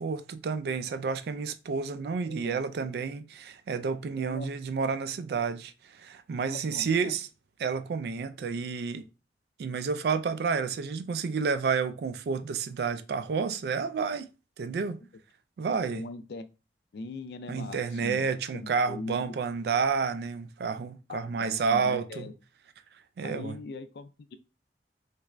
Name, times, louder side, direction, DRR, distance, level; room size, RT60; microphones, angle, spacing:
voice 1, 0.0-7.3 7.6-9.1 9.6-14.3 14.6-15.0 15.6-16.0 17.5-22.3 23.2-23.6, right 5 dB, 60° right, 0.3 m, -30 dB
voice 2, 2.2-2.6 4.2-4.5 6.4-7.1 15.9-16.5 16.9-18.3 18.5-19.2 21.1-22.3 23.2-24.4, left 3 dB, 65° left, 0.4 m, -40 dB
3.3 x 2.4 x 3.0 m
head